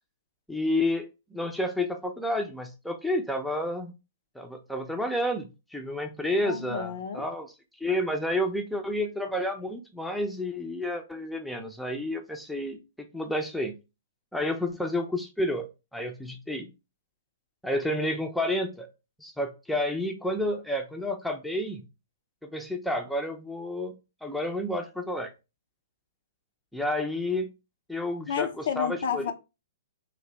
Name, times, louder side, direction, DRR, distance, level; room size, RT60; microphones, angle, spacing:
voice 1, 0.5-3.9 4.4-7.5 7.8-13.7 14.3-16.7 17.6-18.9 19.2-21.8 22.4-23.9 24.2-25.3 26.7-27.5 27.9-29.2, left 1 dB, ahead, 0.6 m, -30 dB
voice 2, 6.4-7.3 28.3-29.3, left 7 dB, 65° left, 0.6 m, -31 dB
3.2 x 2.7 x 3.9 m
hypercardioid pair, 135°, 0 cm